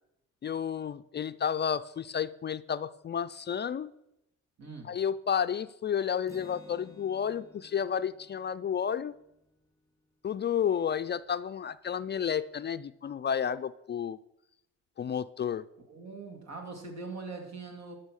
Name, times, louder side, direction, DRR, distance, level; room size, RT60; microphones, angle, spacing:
voice 1, 0.4-3.9 4.8-9.1 10.2-14.2 15.0-15.7, left 8 dB, 35° left, 12 dB, 0.4 m, -31 dB
voice 2, 4.6-4.9 15.9-18.0, right 4 dB, 60° right, 3 dB, 3.0 m, -42 dB
Acoustic guitar, 6.3-9.9, left 3 dB, 10° left, 1.6 m, -56 dB
12.5 x 6.3 x 6.4 m, 0.84 s
cardioid pair, 90°, 30 cm